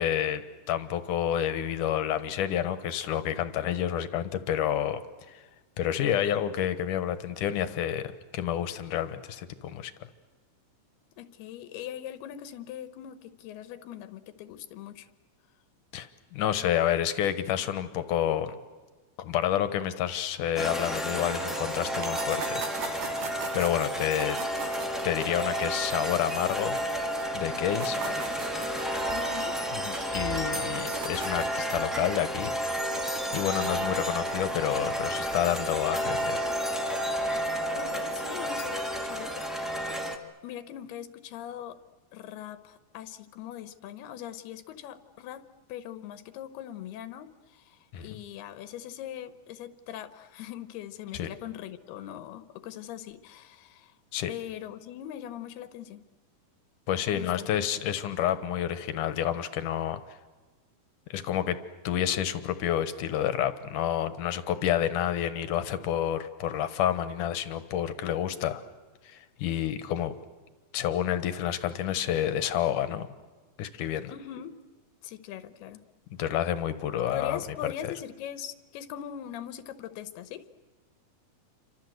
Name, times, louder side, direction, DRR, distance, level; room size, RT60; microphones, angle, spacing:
voice 1, 0.0-5.0 5.8-9.9 15.9-18.6 19.2-22.6 23.5-24.4 25.0-26.8 27.3-28.0 29.7-32.7 33.3-36.4 47.9-48.2 51.1-51.3 54.1-54.3 56.9-60.0 61.1-61.6 61.8-68.6 69.1-70.2 70.7-73.1 73.6-74.1 76.2-77.9, left 10 dB, 65° left, 12 dB, 2.6 m, -29 dB
voice 2, 11.2-15.1 27.9-28.4 29.1-29.6 37.8-39.9 40.4-41.8 42.1-53.9 54.3-56.0 57.1-57.5 74.1-74.6 75.0-75.8 77.1-80.4, left 11 dB, 85° left, 12 dB, 3.1 m, -41 dB
sound 1, 20.5-40.2, equal, ahead, 0.7 m, -31 dB
sound 2, 22.0-27.3 27.6-31.6, right 5 dB, 80° right, 4.7 m, -41 dB
29.0 x 25.5 x 8.0 m, 1.3 s
omnidirectional pair, 4.5 m